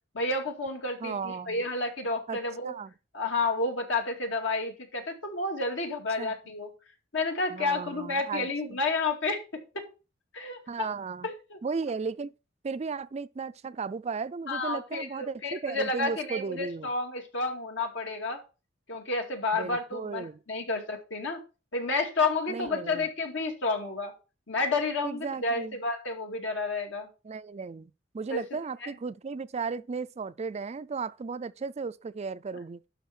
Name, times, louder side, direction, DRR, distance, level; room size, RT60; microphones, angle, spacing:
voice 1, 0.1-2.7 3.1-6.7 7.1-9.4 10.3-10.6 11.2-11.6 14.5-18.4 18.9-21.4 21.7-24.1 24.5-27.1 28.3-28.4 28.8-28.9, left 3 dB, 75° left, 2.4 m, -30 dB
voice 2, 1.0-1.6 2.3-2.9 6.2-6.3 7.5-8.8 10.7-11.3 11.6-12.3 12.6-16.9 19.5-20.4 22.5-23.1 25.0-25.8 27.2-32.8, right 4 dB, 35° right, 0.4 m, -35 dB
11.5 x 4.1 x 5.7 m
head